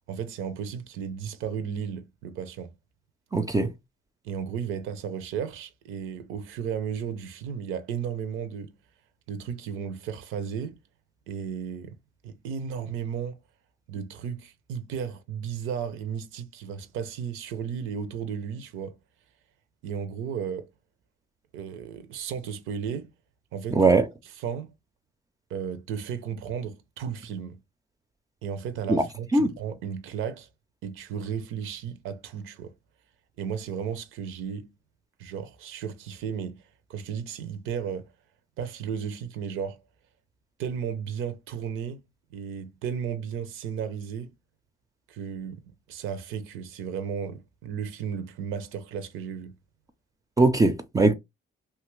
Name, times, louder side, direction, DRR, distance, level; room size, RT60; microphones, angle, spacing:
voice 1, 0.1-2.7 4.2-8.8 9.3-10.8 11.3-12.0 12.2-13.4 13.9-19.0 19.8-20.7 21.5-23.1 23.5-23.8 24.4-24.7 25.5-27.6 28.4-30.5 30.8-32.7 33.4-34.7 35.2-38.1 38.6-39.8 40.6-42.0 42.3-44.3 45.1-49.5, right 7 dB, 90° right, 0.6 m, -34 dB
voice 2, 3.3-3.7 23.7-24.1 28.9-29.0 29.3-29.5 50.4-51.1, right 3 dB, 20° right, 0.4 m, -20 dB
2.8 x 2.4 x 3.0 m
cardioid pair, 90°, 20 cm